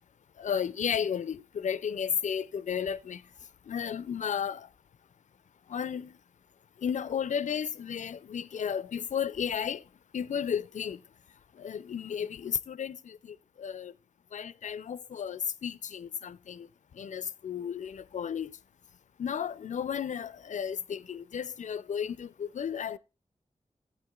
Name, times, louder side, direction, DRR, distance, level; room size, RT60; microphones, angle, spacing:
voice 1, 0.4-3.2 3.7-4.7 5.7-6.1 6.8-9.8 10.1-11.0 11.6-13.9 14.3-16.7 17.0-18.5 19.2-23.0, left 8 dB, 75° left, 0.4 m, -33 dB
15.5 x 8.4 x 2.3 m
cardioid pair, 55°, 13 cm